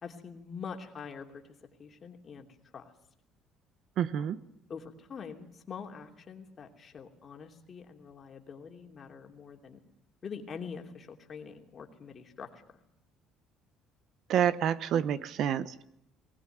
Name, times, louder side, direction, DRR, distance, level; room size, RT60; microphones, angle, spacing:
voice 1, 0.0-1.4 1.8-2.5 2.7-2.9 4.2-4.3 4.7-9.8 10.2-12.6, left 6 dB, 30° left, 3 dB, 2.9 m, -44 dB
voice 2, 4.0-4.4 14.3-15.8, right 9 dB, 55° right, 15 dB, 1.0 m, -28 dB
21.0 x 19.0 x 9.3 m, 0.75 s
cardioid pair, 150°, 0 cm